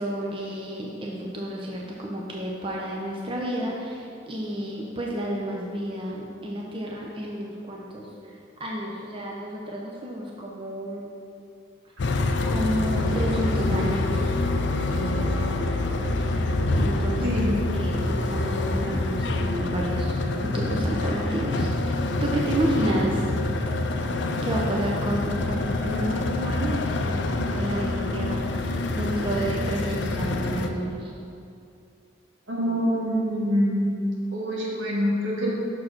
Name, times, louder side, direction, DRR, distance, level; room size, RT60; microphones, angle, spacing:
voice 1, 0.0-11.1 12.4-14.3 14.9-15.8 16.2-16.5 16.8-17.4 17.8-20.2 20.5-23.3 24.4-31.1, right 1 dB, 25° right, -3 dB, 0.6 m, -31 dB
sound 1, 12.0-30.7, left 2 dB, 65° left, 0.5 m, -26 dB
voice 2, 17.2-17.6 32.5-33.9 34.3-35.5, equal, 85° right, -5 dB, 1.8 m, -25 dB
6.3 x 4.6 x 5.9 m, 2.5 s
head